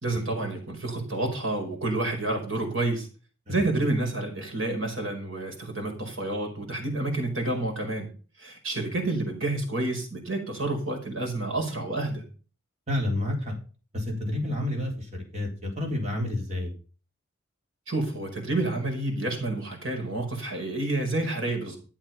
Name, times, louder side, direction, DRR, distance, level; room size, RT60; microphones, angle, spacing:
voice 1, 0.0-3.1 3.5-8.1 8.4-12.2 17.9-21.8, right 2 dB, 70° right, 3 dB, 5.2 m, -29 dB
voice 2, 12.9-13.5 13.9-16.7, left 1 dB, 35° right, 1 dB, 4.1 m, -29 dB
13.0 x 7.3 x 5.9 m, 0.37 s
head